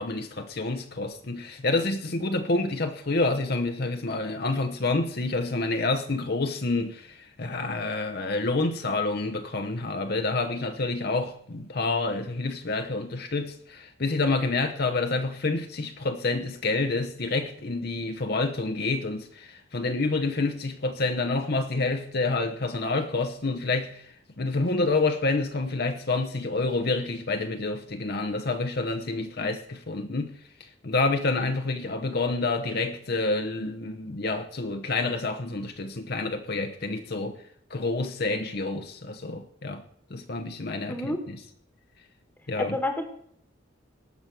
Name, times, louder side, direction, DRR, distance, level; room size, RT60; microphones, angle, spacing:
voice 1, 0.0-30.3 30.6-37.4 37.7-39.8 40.1-41.4 42.5-42.8, left 3 dB, 50° left, 0.9 m, -28 dB
voice 2, 40.9-41.2 42.6-43.1, left 1 dB, 10° left, 1.4 m, -30 dB
18.5 x 6.3 x 6.0 m
head